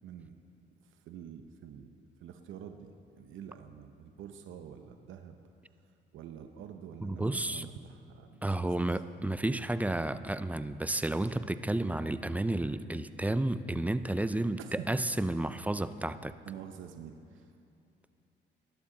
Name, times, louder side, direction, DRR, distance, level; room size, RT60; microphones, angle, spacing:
voice 1, 0.0-0.3 0.8-5.4 6.1-8.9 14.6-14.9 16.5-17.5, right 8 dB, 80° right, 6 dB, 0.8 m, -47 dB
voice 2, 7.0-7.7 8.4-16.3, right 1 dB, 5° right, 12 dB, 0.4 m, -31 dB
19.5 x 11.5 x 3.9 m, 2.7 s
cardioid pair, 90°, 20 cm